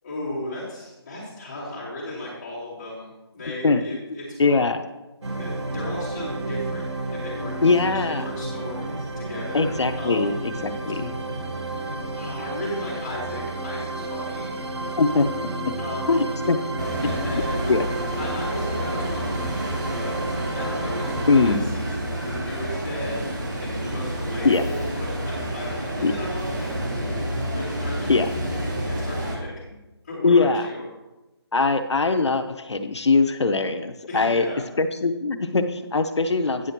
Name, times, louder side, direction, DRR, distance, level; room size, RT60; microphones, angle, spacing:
voice 1, 0.0-4.6 5.3-6.9 7.1-7.8 8.1-10.3 12.1-14.5 15.8-16.2 17.0-17.7 18.2-20.2 20.5-21.9 22.2-28.4 28.9-29.6 30.0-30.8 34.1-34.6, left 1 dB, 15° left, -10 dB, 2.7 m, -35 dB
voice 2, 4.4-4.8 7.6-8.2 9.5-11.1 15.0-15.7 16.1-16.6 17.0-17.2 17.7-17.8 21.3-21.6 24.4-24.6 26.0-26.1 28.1-28.3 30.2-30.7 31.5-34.5 34.8-36.7, left 4 dB, 80° left, 7 dB, 0.7 m, -21 dB
sound 1, 5.2-21.6, right 2 dB, 90° right, 1.5 m, -31 dB
sound 2, 16.8-29.4, right 1 dB, 45° right, 2.0 m, -29 dB
9.7 x 5.8 x 4.5 m, 1.0 s
figure-of-eight pair, 180°, 14 cm